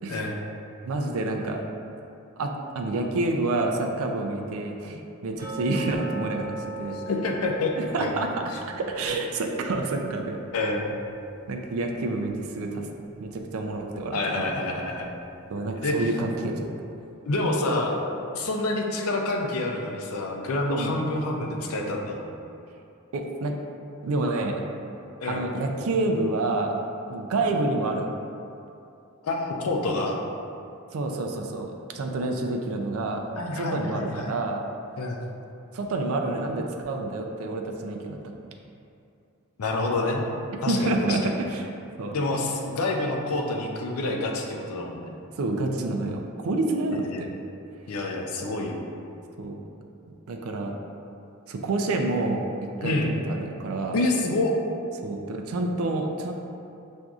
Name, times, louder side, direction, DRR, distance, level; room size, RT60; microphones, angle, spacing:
voice 1, 0.1-0.4 7.1-7.7 8.0-8.1 10.5-11.0 14.1-15.2 15.8-16.1 17.3-18.0 18.3-22.2 25.2-25.4 29.2-30.2 33.4-34.3 35.0-35.2 39.6-40.2 40.6-41.3 42.1-45.1 46.9-47.2 47.9-48.8 52.8-53.1 53.9-54.5, left 2 dB, 80° left, 0 dB, 0.5 m, -27 dB
voice 2, 0.8-1.6 2.4-7.0 7.8-8.3 8.8-10.4 11.5-12.9 13.2-14.5 15.5-16.7 20.7-21.0 23.1-23.5 24.0-24.5 25.3-26.7 27.1-28.1 30.9-33.2 33.5-34.6 35.7-38.4 40.5-41.7 42.0-42.2 45.4-47.3 49.4-49.6 50.3-50.8 51.5-52.5 52.8-54.0 55.0-56.3, right 2 dB, 70° right, 2 dB, 0.4 m, -28 dB
sound 1, 5.4-12.2 12.5-12.6 13.1-13.2 13.8-13.9, right 3 dB, 15° right, 1.3 m, -40 dB
6.0 x 2.6 x 2.3 m, 2.6 s
head